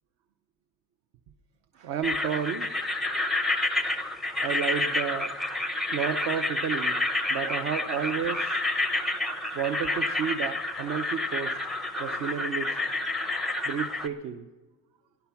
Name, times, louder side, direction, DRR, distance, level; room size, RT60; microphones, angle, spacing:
voice 1, 1.8-2.7 4.4-5.3 5.9-6.9 7.3-8.6 9.5-11.6 12.0-12.8 13.6-14.4, right 8 dB, 40° right, 8 dB, 0.7 m, -31 dB
sound 1, 2.0-14.1, left 2 dB, ahead, 0.7 m, -29 dB
17.5 x 10.5 x 5.8 m, 1.3 s
cardioid pair, 145°, 45 cm